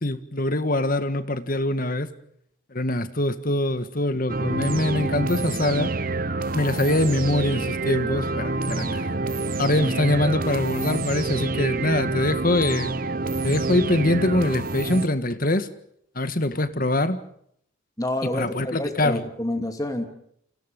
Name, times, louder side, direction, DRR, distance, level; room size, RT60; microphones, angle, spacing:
voice 1, 0.0-2.1 2.7-5.9 6.5-9.1 9.6-12.9 13.4-15.7 16.2-17.2 18.3-19.2, left 1 dB, 45° left, 11 dB, 1.8 m, -23 dB
sound 1, 4.3-15.1, right 3 dB, 45° right, 1.2 m, -27 dB
voice 2, 18.0-20.0, left 1 dB, 15° left, 6 dB, 2.7 m, -28 dB
30.0 x 27.0 x 5.4 m, 0.69 s
head